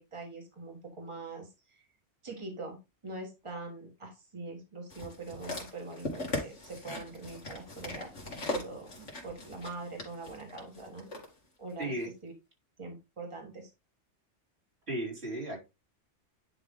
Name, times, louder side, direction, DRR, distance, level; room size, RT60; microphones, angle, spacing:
voice 1, 0.0-1.8 2.2-2.8 3.0-11.1 11.6-12.3 12.8-13.7, right 3 dB, 25° right, 1 dB, 1.9 m, -43 dB
sound 1, 4.9-11.3 12.0-12.1, left 2 dB, 90° left, 2.4 m, -39 dB
voice 2, 14.9-15.6, right 1 dB, 60° right, -4 dB, 3.7 m, -35 dB
10.0 x 3.4 x 3.8 m, 0.26 s
omnidirectional pair, 1.2 m